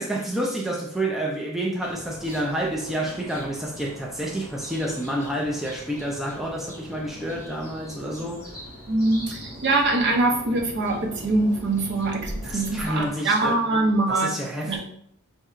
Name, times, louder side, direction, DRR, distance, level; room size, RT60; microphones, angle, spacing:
voice 1, 0.0-8.5 12.4-13.6 14.1-14.8, right 1 dB, ahead, 0.3 m, -29 dB
sound 1, 1.8-13.1, equal, 15° left, 1.2 m, -40 dB
voice 2, 8.9-14.3 14.7-14.8, right 2 dB, 50° right, 0.7 m, -23 dB
5.3 x 2.7 x 2.4 m
head